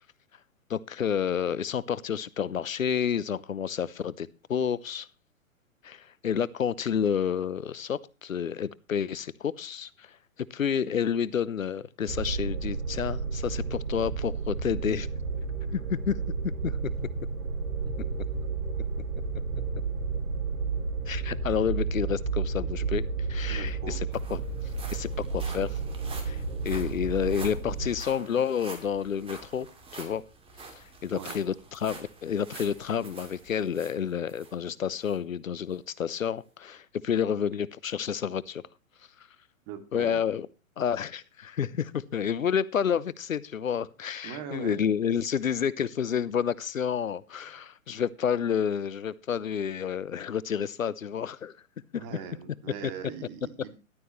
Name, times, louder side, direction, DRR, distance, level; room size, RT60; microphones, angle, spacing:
voice 1, 0.7-5.1 5.8-15.1 15.7-16.2 16.6-16.8 18.2-18.3 21.1-24.4 24.9-25.8 26.2-29.7 29.9-30.2 30.8-38.6 39.9-40.5 40.8-51.5 51.9-52.0, left 8 dB, 70° left, 20 dB, 0.9 m, -30 dB
sound 1, 12.1-28.0, right 4 dB, 75° right, 1.9 m, -32 dB
voice 2, 17.8-18.2 23.5-24.0 31.1-31.4 39.7-40.2 44.2-44.8 52.0-53.7, right 7 dB, 35° right, 8 dB, 2.6 m, -41 dB
sound 2, 23.3-23.4 23.7-34.5 35.0-35.2 35.7-35.8, right 3 dB, 15° right, 2.7 m, -47 dB
14.0 x 12.0 x 3.2 m, 0.31 s
figure-of-eight pair, 115°, 41 cm